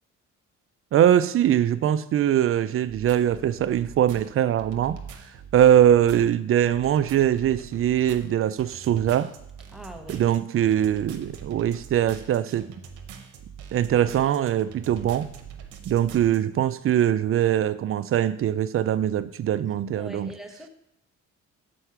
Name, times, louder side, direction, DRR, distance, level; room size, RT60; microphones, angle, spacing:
voice 1, 0.9-5.0 5.5-9.3 10.1-12.7 13.7-15.3 15.9-20.3, right 10 dB, 45° right, 14 dB, 0.4 m, -22 dB
sound 1, 2.8-16.4, right 7 dB, 90° right, 0.9 m, -43 dB
voice 2, 9.7-10.2 19.9-20.7, right 1 dB, ahead, 3 dB, 1.0 m, -41 dB
6.4 x 4.5 x 5.7 m, 0.77 s
cardioid pair, 90°, 30 cm